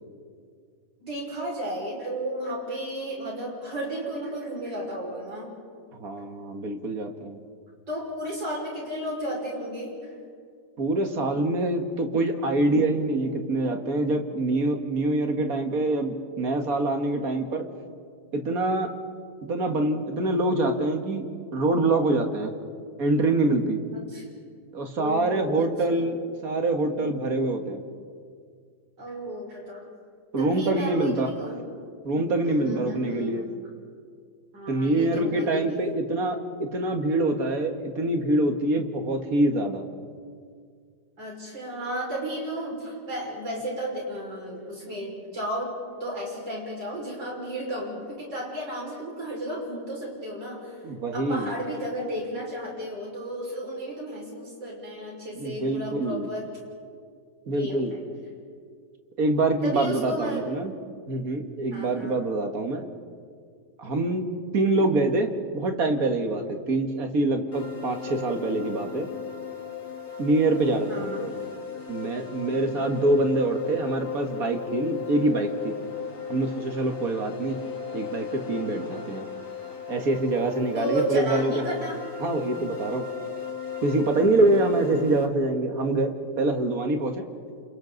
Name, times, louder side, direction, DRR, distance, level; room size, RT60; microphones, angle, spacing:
voice 1, 1.0-5.5 7.9-10.0 23.9-24.3 25.0-26.1 29.0-29.9 30.4-31.6 32.4-33.5 34.5-35.8 41.2-45.7 46.0-50.8 51.1-56.5 57.4-58.0 59.6-60.6 61.7-62.2 70.9-71.3 72.5-72.9 80.7-82.0, right 1 dB, 80° right, -2 dB, 6.2 m, -33 dB
voice 2, 6.0-7.4 10.8-17.7 18.3-18.9 19.4-21.3 21.5-22.6 23.0-23.8 24.7-27.8 30.3-31.3 32.0-33.4 34.7-39.9 50.8-51.5 55.4-56.3 57.5-58.0 59.2-60.7 61.1-62.8 63.8-64.3 64.5-69.1 70.2-71.3 71.9-75.7 76.3-77.6 77.9-79.3 79.9-81.7 82.2-83.1 83.8-87.2, right 2 dB, 55° right, 5 dB, 2.1 m, -25 dB
sound 1, 67.5-85.3, left 7 dB, 50° left, 2.3 m, -36 dB
29.5 x 27.5 x 4.0 m, 2.1 s
omnidirectional pair, 1.9 m